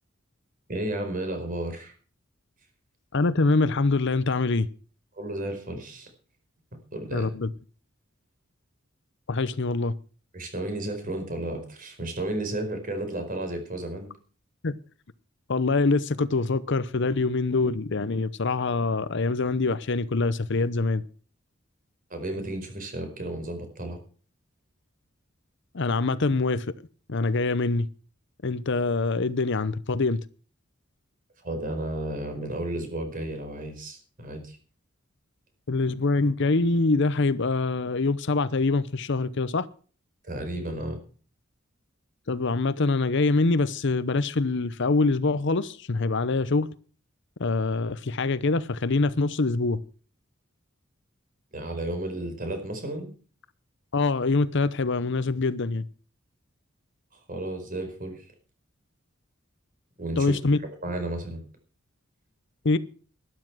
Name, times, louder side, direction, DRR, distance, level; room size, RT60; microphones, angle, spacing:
voice 1, 0.7-1.9 5.2-6.1 6.9-7.3 10.3-14.1 22.1-24.0 31.4-34.6 40.2-41.0 51.5-53.1 57.3-58.2 60.0-60.4 60.8-61.4, right 1 dB, 45° right, 4.8 m, -33 dB
voice 2, 3.1-4.7 7.1-7.5 9.3-9.9 14.6-14.8 15.5-21.0 25.7-26.7 27.1-27.9 28.4-30.2 35.7-39.7 42.3-46.7 47.4-49.8 53.9-55.8 60.2-60.6 62.6-62.8, left 3 dB, 60° left, 0.8 m, -24 dB
12.5 x 11.5 x 6.1 m
head